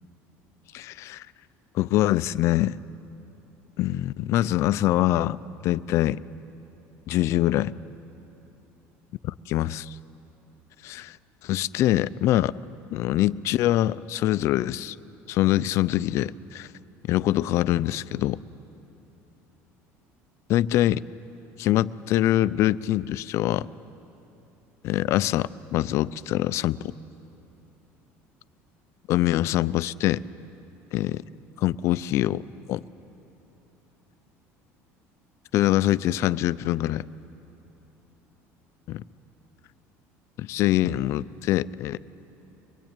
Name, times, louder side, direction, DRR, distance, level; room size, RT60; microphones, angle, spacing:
voice 1, 0.7-1.3 1.7-2.8 3.8-6.2 7.1-7.7 9.2-10.0 10.8-11.2 11.4-12.5 12.9-15.0 15.3-16.7 17.1-18.4 20.5-21.0 21.6-23.7 24.8-26.8 29.1-30.2 30.9-31.2 31.6-32.4 32.7-32.8 35.5-37.1 38.9-39.0 40.4-42.0, left 14 dB, 50° left, 16 dB, 0.5 m, -24 dB
23.5 x 21.0 x 9.0 m, 3.0 s
cardioid pair, 155°, 6 cm